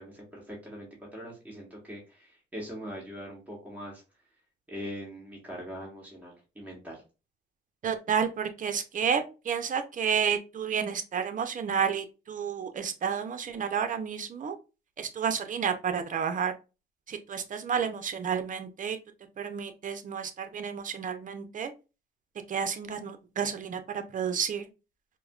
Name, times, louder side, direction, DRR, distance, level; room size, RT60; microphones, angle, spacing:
voice 1, 0.0-4.0 4.7-7.0, equal, 10° right, -3 dB, 1.4 m, -42 dB
voice 2, 7.8-14.6 15.0-16.5 17.1-19.0 19.4-21.7 22.5-24.7, right 7 dB, 40° right, 8 dB, 0.6 m, -31 dB
4.6 x 2.1 x 2.3 m, 0.30 s
cardioid pair, 90°, 20 cm